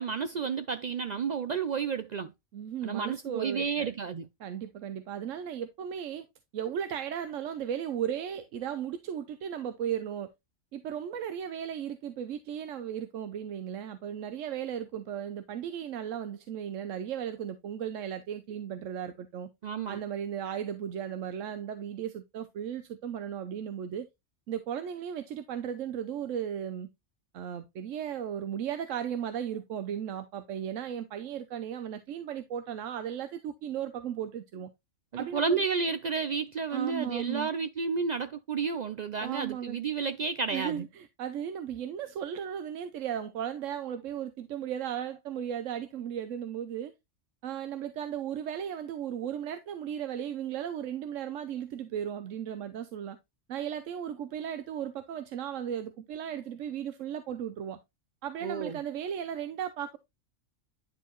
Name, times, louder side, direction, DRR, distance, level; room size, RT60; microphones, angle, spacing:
voice 1, 0.0-2.3 2.8-4.3 19.6-20.0 35.1-40.9 58.4-58.8, right 5 dB, 70° right, 0.4 m, -31 dB
voice 2, 2.5-3.9 4.4-6.3 6.5-10.3 10.7-19.5 19.9-24.1 24.5-26.9 27.3-34.7 35.2-35.6 36.7-37.5 39.2-39.8 40.5-46.9 47.4-53.2 53.5-57.8 58.2-60.0, right 9 dB, 85° right, 1.0 m, -36 dB
10.0 x 4.5 x 3.0 m
omnidirectional pair, 1.3 m